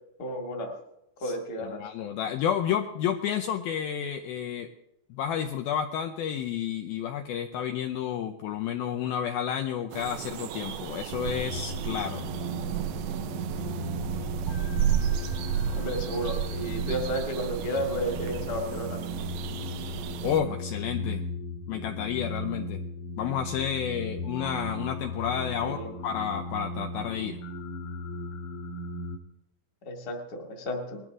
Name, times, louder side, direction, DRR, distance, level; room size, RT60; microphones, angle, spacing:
voice 1, 0.2-0.7 1.2-1.8 15.8-19.0 25.6-25.9 29.9-31.0, equal, 35° left, 1 dB, 1.6 m, -32 dB
voice 2, 1.6-4.7 5.1-12.3 20.2-21.2 21.7-22.8 23.2-27.4, left 9 dB, 85° left, 5 dB, 2.1 m, -31 dB
sound 1, 9.9-20.4, right 9 dB, 80° right, 2.9 m, -32 dB
sound 2, 11.1-29.2, left 2 dB, 60° left, 2.3 m, -37 dB
20.5 x 13.5 x 3.7 m, 0.84 s
omnidirectional pair, 5.3 m